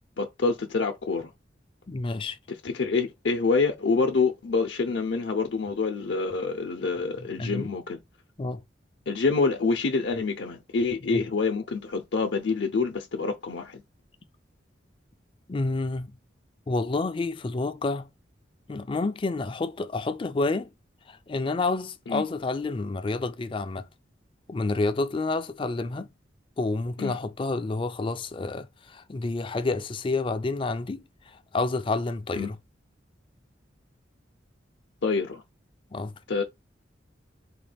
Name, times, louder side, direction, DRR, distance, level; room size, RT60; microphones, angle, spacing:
voice 1, 0.2-1.3 2.5-8.0 9.1-13.8 22.1-22.2 27.0-27.2 32.3-32.5 35.0-35.4 36.3-36.4, left 4 dB, 75° left, 0.6 m, -26 dB
voice 2, 1.9-2.4 7.2-7.7 8.4-8.6 11.1-11.2 15.5-16.2 16.7-18.1 18.7-20.7 21.1-23.9 24.5-26.1 26.6-31.0 31.3-32.6 35.9-36.2, left 3 dB, 30° left, 0.4 m, -29 dB
4.1 x 2.3 x 3.3 m
head